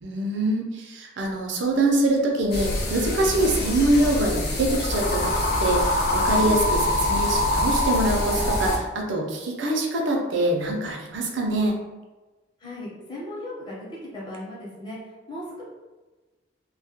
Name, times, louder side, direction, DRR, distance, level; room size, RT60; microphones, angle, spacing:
voice 1, 0.0-11.8, right 1 dB, 85° right, 0 dB, 0.5 m, -24 dB
sound 1, 2.5-8.8, left 1 dB, 55° left, 0.5 m, -24 dB
voice 2, 12.6-15.0 15.3-15.6, left 1 dB, 25° left, -7 dB, 0.7 m, -37 dB
2.3 x 2.1 x 2.8 m, 1.2 s
head